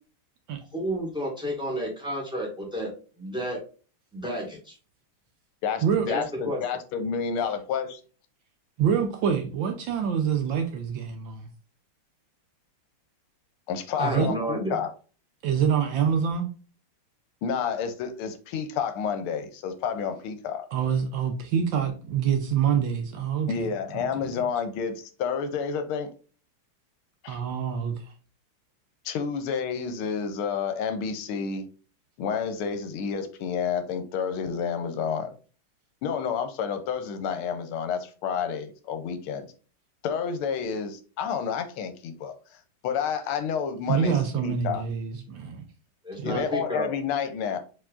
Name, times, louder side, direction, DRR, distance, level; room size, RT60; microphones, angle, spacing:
voice 1, 0.7-2.9 3.2-3.6 4.1-4.7 6.1-6.6 14.0-14.8 46.0-46.9, right 1 dB, ahead, 1.4 m, -31 dB
voice 2, 5.6-8.0 13.7-14.9 17.4-20.7 23.5-26.1 27.2-27.4 29.0-31.6 32.2-35.3 36.0-39.5 40.0-42.3 42.8-44.8 46.2-47.6, left 6 dB, 80° left, 1.5 m, -30 dB
voice 3, 8.8-11.5 14.0-14.3 15.4-16.5 20.7-23.5 23.9-24.0 27.3-28.0 43.9-45.6 46.2-46.4, right 7 dB, 70° right, 1.3 m, -26 dB
4.5 x 4.3 x 2.4 m
omnidirectional pair, 2.4 m